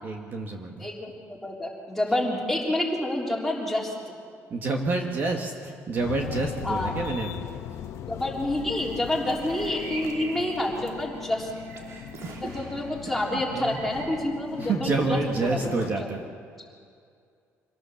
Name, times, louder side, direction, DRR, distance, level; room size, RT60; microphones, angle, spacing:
voice 1, 0.0-0.9 4.5-7.5 13.3-13.8 14.6-16.3, right 3 dB, 40° right, 2 dB, 1.7 m, -28 dB
voice 2, 0.8-3.9 6.6-6.9 8.1-11.5 12.4-15.7 16.0-16.1, left 1 dB, 5° left, -3 dB, 3.5 m, -28 dB
sound 1, 6.0-15.9, left 9 dB, 65° left, 1.0 m, -39 dB
sound 2, 8.5-13.0 13.5-14.2, right 3 dB, 65° right, 2.9 m, -44 dB
25.5 x 17.5 x 7.1 m, 2.3 s
cardioid pair, 150°, 5 cm